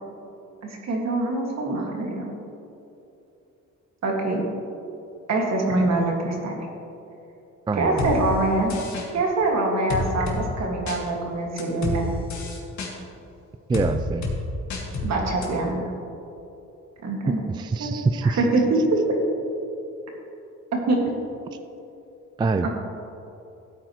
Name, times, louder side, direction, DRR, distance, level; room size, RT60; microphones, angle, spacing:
voice 1, 0.6-2.3 4.0-4.4 5.3-6.7 7.7-8.8 9.1-12.1 15.0-15.8 17.0-17.4 17.8-19.2 20.7-21.0 22.6-22.7, right 2 dB, 60° right, 0 dB, 2.1 m, -24 dB
voice 2, 7.7-8.0 13.7-14.3 17.3-18.4 22.4-22.7, right 3 dB, 15° right, 9 dB, 0.3 m, -24 dB
sound 1, 8.0-8.1 8.7-9.1 9.9-10.4 10.9-11.0 11.6-12.0 12.3-12.9 13.7-13.9 14.2-14.4 14.7-15.1 15.4-15.5, left 3 dB, 65° left, 2.0 m, -28 dB
13.5 x 8.7 x 3.1 m, 2.9 s
cardioid pair, 90°, 30 cm